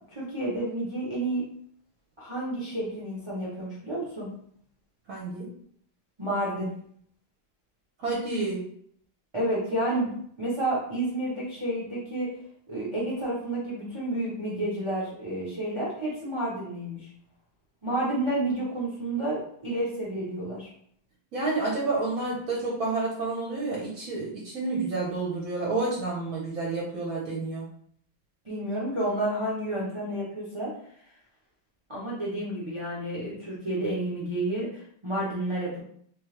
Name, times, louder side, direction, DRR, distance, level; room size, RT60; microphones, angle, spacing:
voice 1, 0.1-1.4 2.2-4.3 6.2-6.7 9.3-10.1 10.4-12.3 12.7-17.1 17.8-20.7 28.4-30.7 31.9-35.8, right 1 dB, 25° right, -6 dB, 0.6 m, -30 dB
voice 2, 5.1-5.5 8.0-8.6 21.3-27.7, right 3 dB, 55° right, -4 dB, 1.1 m, -29 dB
3.5 x 3.3 x 3.2 m, 0.63 s
omnidirectional pair, 2.2 m